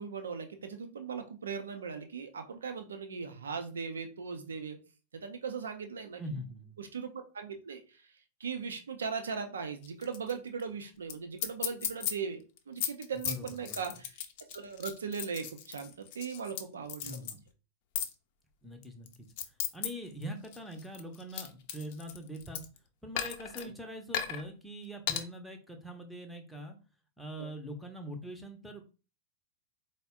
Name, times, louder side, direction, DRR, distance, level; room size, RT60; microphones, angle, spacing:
voice 1, 0.0-4.8 5.1-6.2 6.8-8.0 8.4-14.1 14.5-17.3 23.6-23.7 27.4-27.5, right 6 dB, 70° right, 7 dB, 0.6 m, -39 dB
voice 2, 6.2-6.7 13.1-14.0 17.0-17.4 18.6-19.1 19.4-22.6 23.0-26.8 27.2-28.8, equal, ahead, 3 dB, 0.7 m, -43 dB
sound 1, 9.8-10.3 10.6-10.7 11.1-11.2 11.4-12.1 12.6-16.6 16.9-17.3 18.0-18.1 18.8-19.9 20.2-22.8 23.2-23.6 24.1-24.4 25.1-25.2, left 10 dB, 50° left, 0.5 m, -35 dB
4.1 x 2.1 x 3.5 m, 0.33 s
figure-of-eight pair, 90°, 0 cm